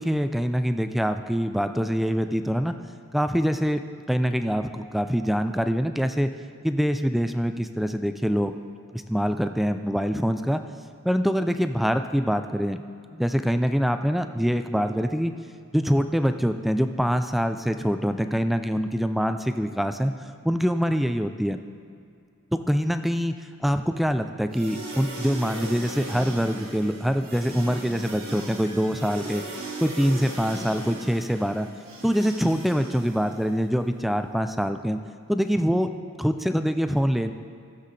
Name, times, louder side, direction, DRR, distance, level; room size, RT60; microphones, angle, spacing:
voice 1, 0.0-2.7 3.1-3.8 4.1-6.3 6.6-8.6 8.9-10.6 11.0-12.8 13.1-15.3 15.7-20.1 20.4-21.6 22.5-23.3 23.6-29.4 29.8-31.7 32.0-35.0 35.3-35.9 36.2-37.3, equal, ahead, 8 dB, 0.3 m, -24 dB
sound 1, 24.5-33.6, right 2 dB, 65° right, 1.8 m, -38 dB
16.5 x 7.5 x 3.3 m, 2.4 s
head